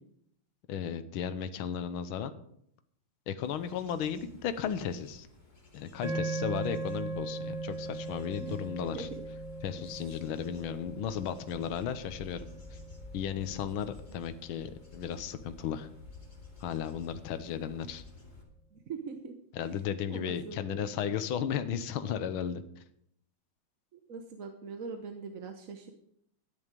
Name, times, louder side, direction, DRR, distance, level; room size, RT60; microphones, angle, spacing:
voice 1, 0.7-2.3 3.3-5.3 5.7-9.1 9.6-12.5 13.1-15.9 16.6-18.0 19.5-22.6, left 8 dB, 75° left, 10 dB, 1.7 m, -35 dB
Bird / Insect / Wind, 3.4-18.4, left 3 dB, 20° left, 2.8 m, -52 dB
sound 1, 6.0-14.4, right 3 dB, 65° right, 4.5 m, -40 dB
voice 2, 18.7-19.3 20.1-21.2 23.9-25.9, right 5 dB, 50° right, 5 dB, 1.1 m, -42 dB
13.0 x 10.5 x 5.2 m, 0.70 s
omnidirectional pair, 2.4 m